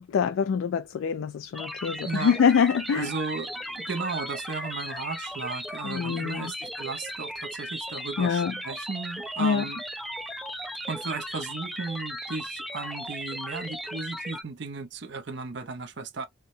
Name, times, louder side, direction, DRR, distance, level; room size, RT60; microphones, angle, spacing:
voice 1, 0.0-3.1 5.8-6.5 8.2-8.6 9.4-9.7, left 6 dB, 75° left, 0.3 m, -25 dB
sound 1, 1.5-14.4, equal, ahead, 0.4 m, -37 dB
voice 2, 2.0-2.4 2.9-9.8 10.9-16.3, right 4 dB, 60° right, 0.6 m, -35 dB
4.6 x 2.1 x 2.6 m
head